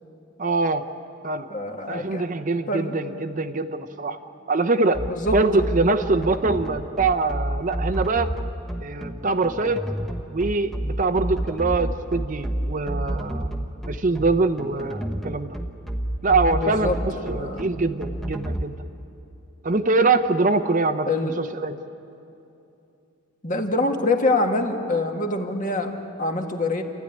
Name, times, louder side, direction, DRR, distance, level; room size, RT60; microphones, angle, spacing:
voice 1, 0.4-0.9 1.2-1.5 1.9-4.2 4.5-5.0 5.3-8.3 8.8-9.8 10.3-15.6 16.2-18.8 19.6-21.8, right 3 dB, 40° right, 9 dB, 0.7 m, -23 dB
voice 2, 1.5-2.2 2.7-3.0 5.1-5.3 16.5-17.7 21.1-21.4 23.4-26.8, left 2 dB, 40° left, 3 dB, 1.7 m, -25 dB
sound 1, 4.9-18.6, right 1 dB, ahead, 1.0 m, -29 dB
29.5 x 13.0 x 9.8 m, 2.8 s
head